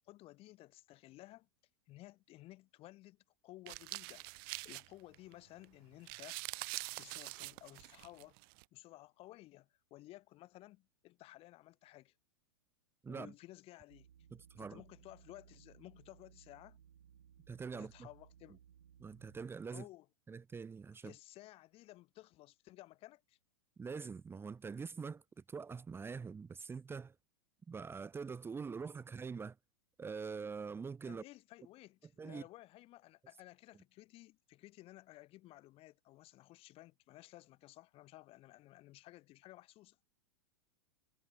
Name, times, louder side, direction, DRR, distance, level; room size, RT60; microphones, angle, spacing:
voice 1, 0.0-1.5 1.9-6.4 6.7-8.4 8.7-12.1 13.1-14.1 14.6-16.8 17.7-18.6 19.7-20.1 21.0-23.4 31.1-40.0, left 17 dB, 40° left, 3.8 m, -56 dB
sound 1, 3.7-5.3 5.6-5.7 5.9-8.6, right 31 dB, 50° right, 0.6 m, -45 dB
voice 2, 13.0-13.3 14.3-14.8 17.5-18.1 19.0-19.9 20.3-21.1 23.8-25.2 25.5-27.1 27.7-29.6 30.0-31.2 32.2-32.4, right 5 dB, 15° right, 1.5 m, -44 dB
sound 2, 13.9-19.5, right 9 dB, 75° right, 8.0 m, -63 dB
hypercardioid pair, 105°, 15 cm